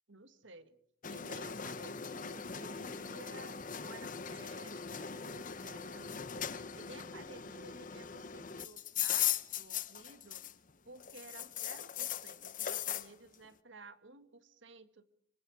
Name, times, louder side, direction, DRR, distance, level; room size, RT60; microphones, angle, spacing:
voice 1, 0.1-0.8 1.1-6.4 6.7-10.4 10.8-15.0, right 3 dB, 70° right, 10 dB, 1.7 m, -54 dB
sound 1, 1.0-10.7 11.0-13.1, left 9 dB, 40° left, 0.9 m, -39 dB
25.5 x 23.5 x 4.7 m, 0.67 s
head